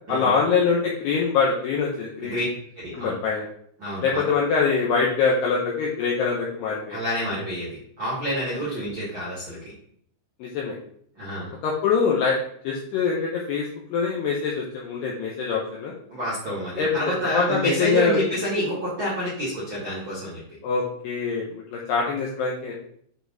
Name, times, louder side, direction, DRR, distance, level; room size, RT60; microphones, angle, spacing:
voice 1, 0.1-2.4 2.9-3.5 4.0-7.0 10.4-10.8 11.6-12.4 12.6-15.9 16.8-16.9 17.3-18.2 20.6-22.8, left 5 dB, 85° left, -3 dB, 2.3 m, -24 dB
voice 2, 2.7-3.1 3.8-4.2 6.9-9.6 11.1-11.6 16.1-20.4, equal, 70° right, -9 dB, 1.1 m, -28 dB
8.4 x 3.5 x 3.9 m, 0.65 s
omnidirectional pair, 5.8 m